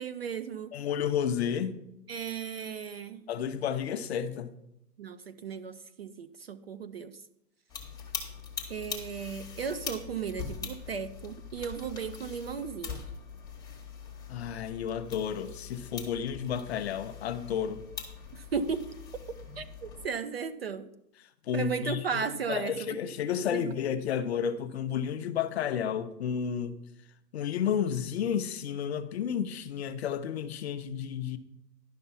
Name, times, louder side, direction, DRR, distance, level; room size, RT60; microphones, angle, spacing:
voice 1, 0.0-0.7 2.1-3.2 5.0-7.2 8.7-13.0 18.3-18.9 19.3-20.9 21.5-23.0 23.5-23.7, right 6 dB, 40° right, 0.4 m, -35 dB
voice 2, 0.7-1.8 3.3-4.5 14.3-17.8 21.5-26.8 27.3-31.4, left 8 dB, 40° left, 0.6 m, -31 dB
sound 1, 7.7-20.1, left 6 dB, 10° left, 1.1 m, -42 dB
11.0 x 5.8 x 5.5 m
hypercardioid pair, 145°, 49 cm